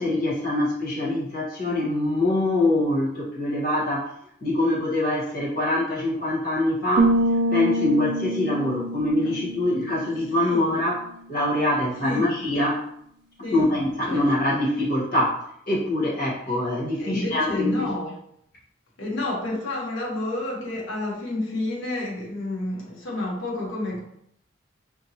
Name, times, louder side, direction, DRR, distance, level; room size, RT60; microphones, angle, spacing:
voice 1, 0.0-4.1 4.4-7.1 7.5-11.0 11.3-12.8 13.5-17.9, left 1 dB, 45° left, -6 dB, 1.4 m, -24 dB
sound 1, 7.0-10.7, right 1 dB, 55° right, 0.3 m, -25 dB
voice 2, 10.4-10.7 12.0-12.3 13.4-13.7 14.1-14.2 16.5-16.6 17.0-18.1 19.0-24.0, left 2 dB, 80° left, -2 dB, 1.2 m, -29 dB
4.3 x 2.9 x 2.8 m, 0.72 s
head